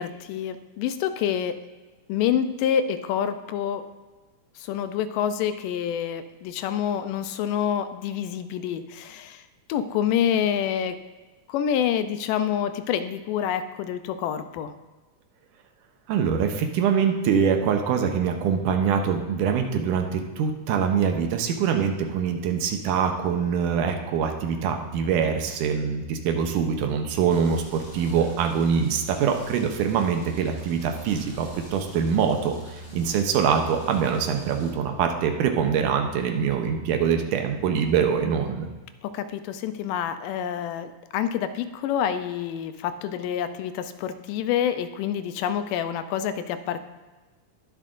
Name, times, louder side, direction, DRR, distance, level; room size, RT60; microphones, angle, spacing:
voice 1, 0.0-1.5 2.1-3.8 4.6-9.4 9.7-11.0 11.5-14.7 39.0-46.8, left 9 dB, 85° left, 10 dB, 2.2 m, -27 dB
voice 2, 16.1-38.7, right 7 dB, 75° right, 4 dB, 2.2 m, -24 dB
sound 1, 27.3-34.7, right 1 dB, 20° left, 2.5 m, -43 dB
20.0 x 7.4 x 2.5 m, 1.2 s
omnidirectional pair, 3.8 m